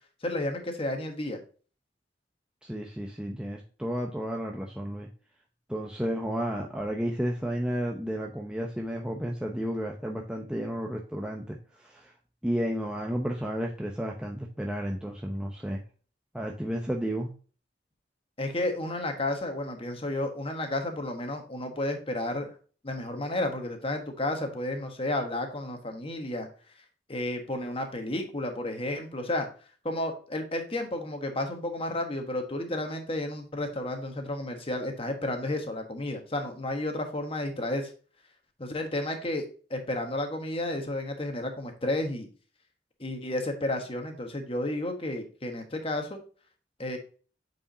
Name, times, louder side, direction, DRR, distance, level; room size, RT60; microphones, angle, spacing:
voice 1, 0.2-1.4 18.4-22.5 22.8-26.5 27.1-29.5 29.8-37.9 38.6-39.4 39.7-42.3 43.0-46.2 46.8-47.0, left 1 dB, 30° left, 4 dB, 1.4 m, -32 dB
voice 2, 2.6-5.1 5.7-12.1 12.4-15.8 16.3-17.3, equal, 5° right, 0 dB, 0.7 m, -32 dB
8.5 x 4.8 x 2.7 m, 0.39 s
head